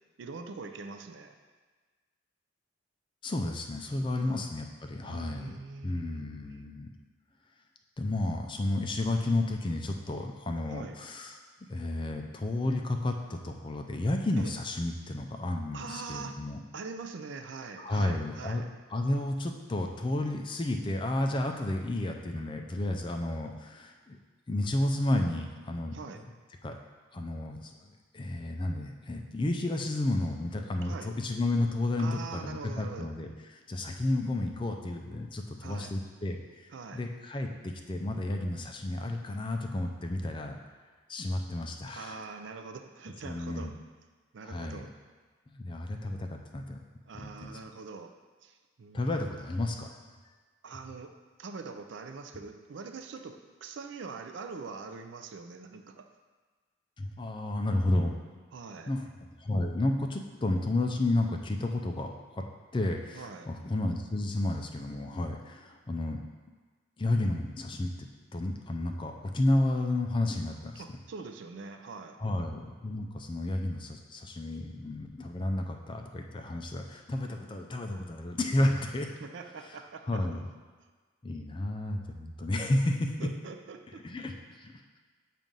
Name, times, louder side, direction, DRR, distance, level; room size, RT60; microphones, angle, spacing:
voice 1, 0.2-1.4 4.2-4.5 5.0-6.7 10.7-11.0 14.4-14.5 15.7-16.4 16.7-18.7 25.9-26.2 30.8-31.1 32.0-33.1 35.6-35.9 36.7-37.0 42.0-43.8 44.3-44.9 47.1-48.1 48.4-49.1 50.6-51.1 51.4-56.1 58.5-58.9 63.1-63.5 70.8-72.2 79.2-80.3 83.2-84.0, right 4 dB, 60° right, 6 dB, 0.4 m, -43 dB
voice 2, 3.2-5.5 5.8-6.9 8.0-11.4 11.7-16.6 17.8-18.6 18.9-24.2 24.5-26.0 26.6-26.7 27.1-33.3 33.7-40.6 41.1-42.2 43.2-43.7 44.4-44.9 45.5-46.8 47.2-47.5 48.9-49.9 57.0-58.2 58.9-59.1 59.4-62.4 62.7-66.2 67.0-68.1 68.3-70.8 72.2-79.1 79.7-79.8 80.1-80.5 81.2-83.3 84.0-85.0, left 1 dB, 25° left, 4 dB, 0.4 m, -32 dB
7.4 x 2.5 x 5.2 m, 1.4 s
head